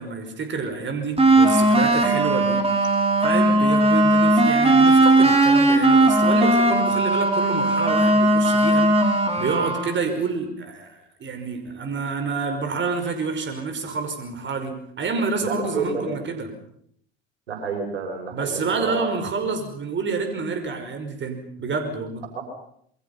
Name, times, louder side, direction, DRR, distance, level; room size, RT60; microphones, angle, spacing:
voice 1, 0.0-2.6 3.2-16.5 18.3-22.2, right 4 dB, 35° right, 6 dB, 5.5 m, -28 dB
sound 1, 1.2-10.0, right 2 dB, 20° right, 5.6 m, -18 dB
voice 2, 15.4-16.2 17.5-19.1 22.3-22.4, right 5 dB, 85° right, 3 dB, 6.3 m, -29 dB
28.0 x 23.5 x 5.7 m, 0.67 s
hypercardioid pair, 75°, 33 cm